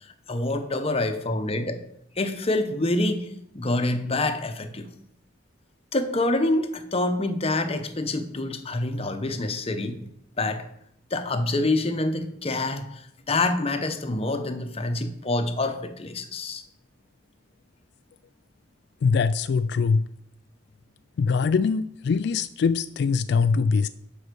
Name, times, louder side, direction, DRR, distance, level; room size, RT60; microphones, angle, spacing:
voice 1, 0.3-1.8 2.2-3.3 3.5-4.9 5.9-10.0 10.4-10.7 11.1-16.6, left 2 dB, 30° left, 8 dB, 0.9 m, -26 dB
voice 2, 19.0-20.1 21.2-23.9, left 5 dB, 65° left, 12 dB, 0.3 m, -22 dB
7.9 x 5.5 x 6.8 m, 0.75 s
head